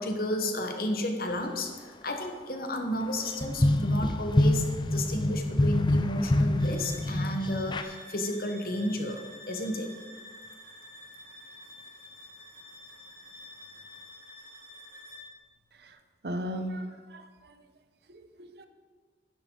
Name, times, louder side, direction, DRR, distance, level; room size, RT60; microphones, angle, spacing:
voice 1, 0.0-9.9, left 1 dB, 50° left, 4 dB, 1.2 m, -32 dB
sound 1, 3.1-7.8, left 1 dB, 25° left, 0.5 m, -26 dB
sound 2, 6.6-15.4, left 1 dB, 80° right, 2.8 m, -49 dB
voice 2, 16.2-17.6 18.1-18.7, equal, 60° right, 8 dB, 0.8 m, -37 dB
11.0 x 10.5 x 3.8 m, 1.5 s
head